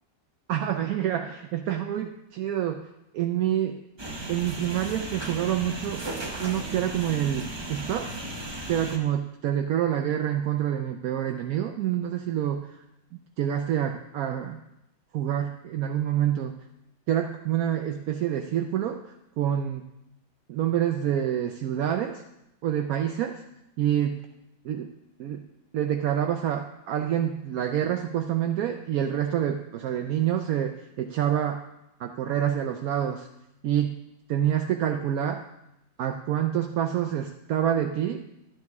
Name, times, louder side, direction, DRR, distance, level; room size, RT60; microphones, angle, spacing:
voice 1, 0.5-2.9 3.1-3.8 4.3-6.0 6.4-8.1 8.7-12.7 13.4-14.6 15.1-16.5 17.1-19.0 19.4-19.8 20.5-22.2 22.6-23.4 23.8-24.2 24.6-24.9 25.2-25.4 25.7-31.6 32.0-33.3 33.6-34.0 34.3-35.4 36.0-38.2, right 10 dB, 70° right, 4 dB, 0.9 m, -27 dB
sound 1, 4.0-9.0, right 1 dB, 25° right, 0.5 m, -35 dB
11.5 x 8.3 x 3.5 m, 0.86 s
omnidirectional pair, 2.0 m